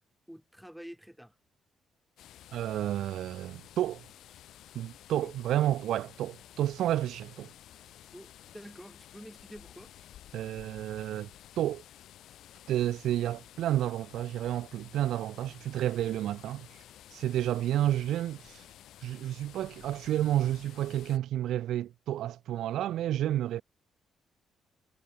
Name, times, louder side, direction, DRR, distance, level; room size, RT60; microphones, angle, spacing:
voice 1, 0.3-1.3 5.2-5.3 8.1-9.9, equal, ahead, 1.5 m, -48 dB
sound 1, 2.2-21.2, left 12 dB, 70° left, 0.8 m, -53 dB
voice 2, 2.5-4.1 4.7-7.5 10.3-11.3 11.6-11.8 12.7-16.8 17.1-18.6 19.0-23.6, right 12 dB, 75° right, 0.4 m, -30 dB
cardioid pair, 150°, 0 cm